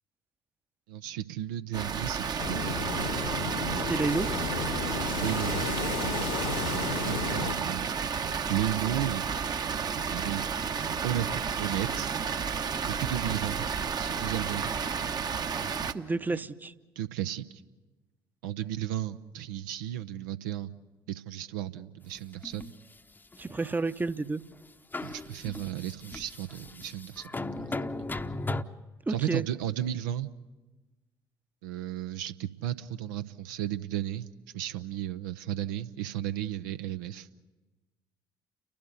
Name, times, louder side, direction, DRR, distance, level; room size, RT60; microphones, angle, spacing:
voice 1, 0.9-2.8 5.2-5.7 6.0-6.2 6.7-7.9 8.5-9.2 9.9-10.5 11.0-12.1 13.0-13.7 14.0-14.8 16.3-16.4 17.0-17.6 18.4-20.7 21.1-22.7 25.0-27.3 27.6-27.7 29.1-30.3 31.6-34.3 34.5-37.3, right 12 dB, 70° right, 9 dB, 0.6 m, -34 dB
Water, 1.7-15.9, right 6 dB, 35° right, 1.0 m, -32 dB
sound 1, 2.4-7.6, left 5 dB, 65° left, 1.4 m, -33 dB
voice 2, 3.8-4.3 15.9-16.7 23.4-24.4 29.1-29.4, right 3 dB, 15° right, 13 dB, 0.8 m, -30 dB
sound 2, 22.1-22.8 23.3-24.1 24.5-24.6 24.9-28.6, left 2 dB, 15° left, 0.8 m, -37 dB
30.0 x 12.0 x 9.4 m, 1.2 s
figure-of-eight pair, 50°, 11 cm